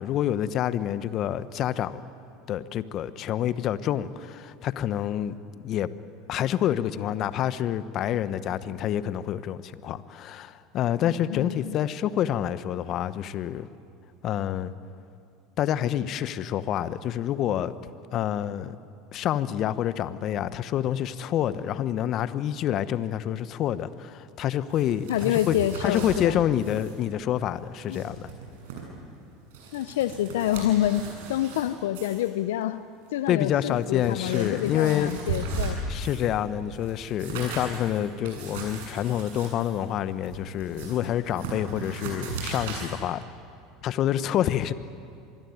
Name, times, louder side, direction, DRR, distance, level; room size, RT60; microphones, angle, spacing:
voice 1, 0.0-2.0 2.5-5.9 6.3-13.7 14.2-14.7 15.6-17.7 18.1-18.8 19.1-25.5 25.8-28.3 33.3-35.1 35.9-43.2 43.8-44.7, left 11 dB, 50° left, 14 dB, 1.0 m, -27 dB
voice 2, 11.0-11.8 25.1-26.4 27.9-28.1 29.7-31.0 31.3-32.8 33.1-35.8, left 12 dB, 75° left, 12 dB, 0.6 m, -27 dB
sound 1, 24.7-26.2 26.6-27.0 27.2-27.3 27.7-28.8 29.3-31.6 31.9-32.3 33.1-33.2 33.6-36.3 36.7-42.9, right 4 dB, 75° right, 8.0 m, -37 dB
25.5 x 21.5 x 9.5 m, 2.5 s
hypercardioid pair, 80°, 0 cm